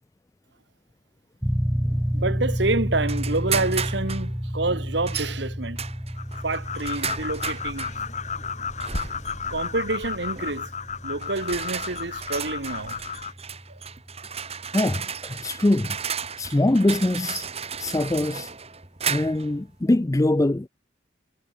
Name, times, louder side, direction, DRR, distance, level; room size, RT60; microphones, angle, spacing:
sound 1, 1.4-15.8, equal, 5° right, 1.0 m, -31 dB
voice 1, 2.1-5.8 6.4-7.9 9.0-9.1 9.5-10.7 11.0-13.0 13.7-13.8, right 2 dB, 65° right, 1.7 m, -28 dB
sound 2, 3.1-4.3 5.1-5.3 5.8-8.0 8.8-9.3 10.4-10.6 11.2-19.5, right 7 dB, 35° right, 6.0 m, -34 dB
sound 3, 6.2-13.3, left 5 dB, 40° left, 3.5 m, -33 dB
voice 2, 14.7-16.0 16.4-17.5 17.8-18.5 19.1-20.7, left 1 dB, 15° left, 0.4 m, -23 dB
head